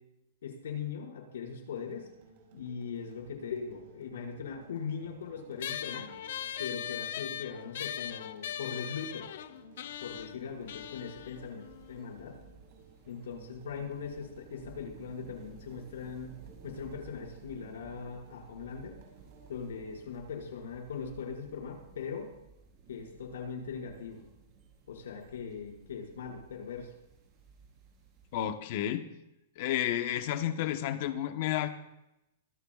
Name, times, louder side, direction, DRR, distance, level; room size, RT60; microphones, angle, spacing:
voice 1, 0.4-2.1 2.5-6.1 6.6-9.3 10.0-12.4 13.1-16.3 16.6-19.0 19.5-22.3 22.9-24.2 24.9-26.9, left 6 dB, 90° left, -1 dB, 5.7 m, -40 dB
sound 1, 1.6-20.0, right 4 dB, 50° right, 5.0 m, -58 dB
sound 2, 5.6-12.4, left 11 dB, 65° left, 0.7 m, -40 dB
sound 3, 9.9-28.5, right 5 dB, 25° right, 4.4 m, -56 dB
voice 2, 28.3-29.0 29.6-31.7, left 12 dB, 45° left, 8 dB, 1.1 m, -31 dB
24.5 x 14.5 x 2.5 m, 0.88 s
supercardioid pair, 165°, 0 cm